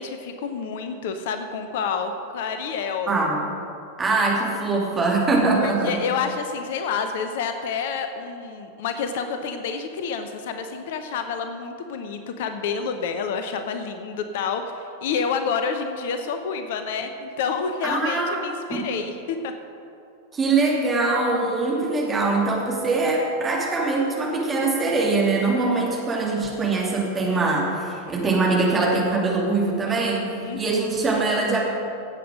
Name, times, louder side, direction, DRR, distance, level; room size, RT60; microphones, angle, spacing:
voice 1, 0.0-3.1 5.6-19.5 30.4-30.8, left 5 dB, 55° left, 7 dB, 0.8 m, -29 dB
voice 2, 3.1-3.4 4.0-6.0 17.8-18.4 18.7-18.8 20.3-31.6, right 3 dB, 20° right, -3 dB, 2.7 m, -23 dB
16.5 x 8.0 x 5.1 m, 2.6 s
figure-of-eight pair, 90°, 0 cm